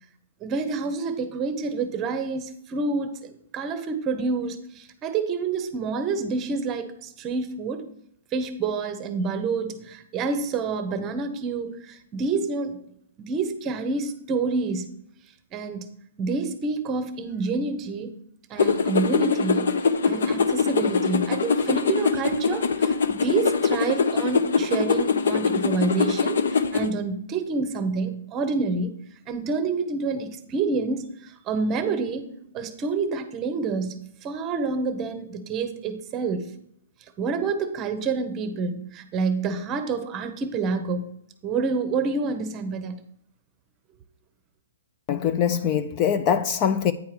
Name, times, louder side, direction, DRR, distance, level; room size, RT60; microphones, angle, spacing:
voice 1, 0.4-7.9 8.3-12.8 13.2-14.8 15.5-18.2 18.5-29.0 29.3-36.5 37.2-41.0 41.4-43.0, right 4 dB, 20° right, 0.8 m, -28 dB
sound 1, 18.6-26.9, left 5 dB, 70° left, 0.7 m, -23 dB
voice 2, 45.1-46.9, left 8 dB, 25° left, 0.3 m, -23 dB
9.2 x 4.6 x 4.9 m
hypercardioid pair, 160°, 0 cm